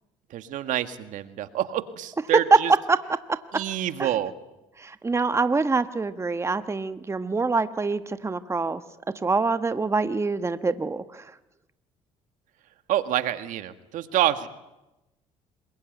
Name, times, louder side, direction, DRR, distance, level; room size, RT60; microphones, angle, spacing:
voice 1, 0.3-2.7 3.5-4.3 12.9-14.5, right 12 dB, 70° right, 10 dB, 1.8 m, -27 dB
voice 2, 2.9-3.6 4.0-4.1 4.8-8.8 9.2-11.2, right 4 dB, 20° right, 11 dB, 1.2 m, -25 dB
26.5 x 22.0 x 9.4 m, 0.97 s
supercardioid pair, 80°, 14 cm